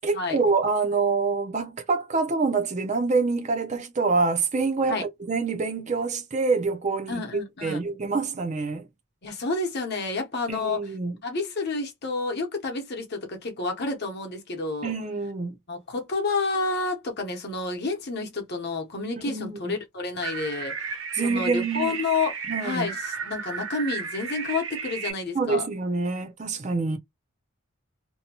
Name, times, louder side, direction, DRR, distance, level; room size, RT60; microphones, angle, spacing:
voice 1, 0.0-8.9 10.5-11.1 14.8-15.6 19.2-19.6 21.2-22.0 22.5-22.9 25.3-27.0, right 4 dB, 35° right, 0.4 m, -26 dB
voice 2, 7.1-7.9 9.2-10.9 11.2-14.9 15.7-25.7, left 3 dB, 50° left, 0.8 m, -30 dB
sound 1, 20.2-25.1, right 6 dB, 65° right, 0.8 m, -33 dB
2.7 x 2.2 x 2.8 m
head